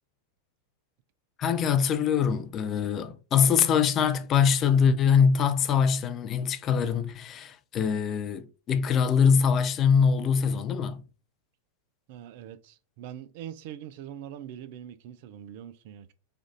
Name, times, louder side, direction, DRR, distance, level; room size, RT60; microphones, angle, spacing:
voice 1, 1.4-11.0, left 6 dB, 30° left, 0.4 m, -23 dB
voice 2, 12.1-16.1, right 10 dB, 50° right, 0.3 m, -43 dB
3.4 x 2.4 x 3.9 m
figure-of-eight pair, 90°, 0 cm